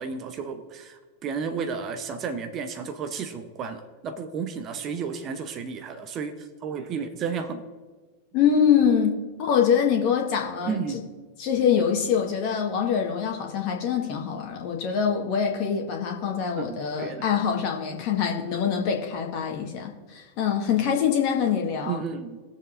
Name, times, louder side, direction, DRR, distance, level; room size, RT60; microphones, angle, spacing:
voice 1, 0.0-7.7 10.7-11.0 16.6-17.3 21.8-22.4, right 6 dB, 30° right, 8 dB, 0.9 m, -32 dB
voice 2, 8.3-10.8 11.4-22.0, left 7 dB, 45° left, 1 dB, 1.5 m, -24 dB
21.5 x 7.1 x 2.6 m, 1.3 s
figure-of-eight pair, 90°, 0 cm